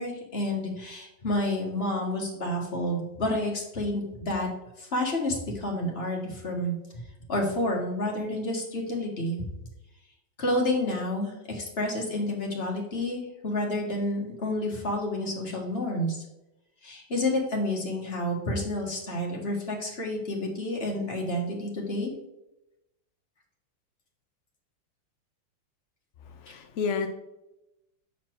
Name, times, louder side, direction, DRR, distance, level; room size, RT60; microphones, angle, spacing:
voice 1, 0.0-4.5 4.8-6.8 7.3-9.4 10.4-16.2 16.8-22.1, left 1 dB, 35° left, -1 dB, 1.7 m, -29 dB
voice 2, 26.3-27.1, left 5 dB, 75° left, 6 dB, 0.6 m, -30 dB
7.1 x 4.3 x 4.6 m, 0.91 s
omnidirectional pair, 2.1 m